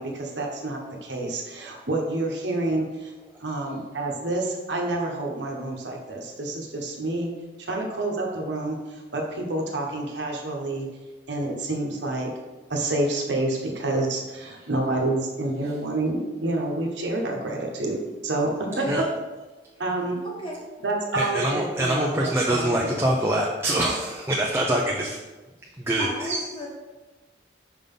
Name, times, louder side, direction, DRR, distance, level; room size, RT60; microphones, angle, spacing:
voice 1, 0.0-3.1 3.4-7.3 7.6-10.9 11.3-12.3 12.7-19.0 19.8-20.2 20.8-23.0, right 2 dB, 70° right, 1 dB, 1.0 m, -28 dB
voice 2, 18.6-18.9 20.2-20.6 26.0-26.7, equal, 30° left, -2 dB, 1.3 m, -35 dB
voice 3, 21.1-25.2 25.8-26.4, right 1 dB, 15° right, -2 dB, 0.5 m, -24 dB
5.2 x 3.8 x 5.4 m, 1.2 s
head